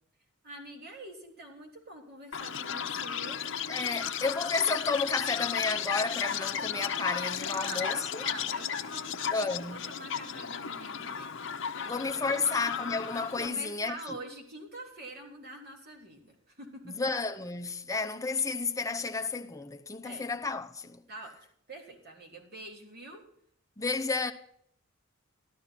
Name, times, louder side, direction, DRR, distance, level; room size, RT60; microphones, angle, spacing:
voice 1, 0.4-3.4 7.5-11.4 11.6-12.5 13.4-17.0 20.0-20.2 21.1-21.4 21.7-23.2, right 2 dB, 50° right, 3.4 m, -45 dB
Chirp tweet, 2.3-13.5, left 8 dB, 60° left, 0.8 m, -34 dB
voice 2, 3.7-8.2 9.3-9.9 11.9-14.2 16.8-21.0 23.8-24.3, left 4 dB, 15° left, 0.8 m, -32 dB
13.0 x 13.0 x 4.3 m
head